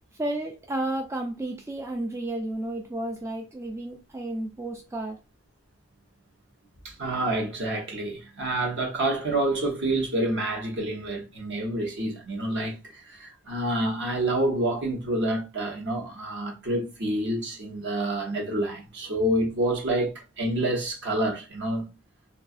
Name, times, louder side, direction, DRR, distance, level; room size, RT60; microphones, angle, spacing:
voice 1, 0.2-5.2, right 1 dB, 15° right, 0.3 m, -32 dB
voice 2, 6.8-21.9, right 1 dB, 60° right, 0.9 m, -28 dB
2.7 x 2.4 x 2.4 m
head